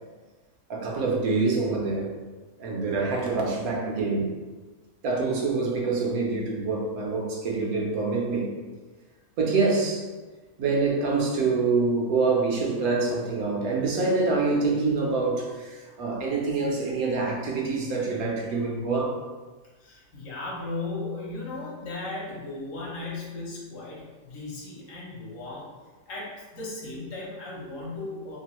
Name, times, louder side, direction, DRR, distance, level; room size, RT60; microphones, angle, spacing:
voice 1, 0.7-2.1 2.6-4.4 5.0-8.5 9.4-10.1 10.6-19.2, right 3 dB, 75° right, -1 dB, 1.1 m, -26 dB
voice 2, 15.8-16.3 19.8-25.7 26.1-28.4, left 2 dB, 65° left, -5 dB, 1.1 m, -36 dB
2.9 x 2.3 x 2.9 m, 1.3 s
omnidirectional pair, 1.6 m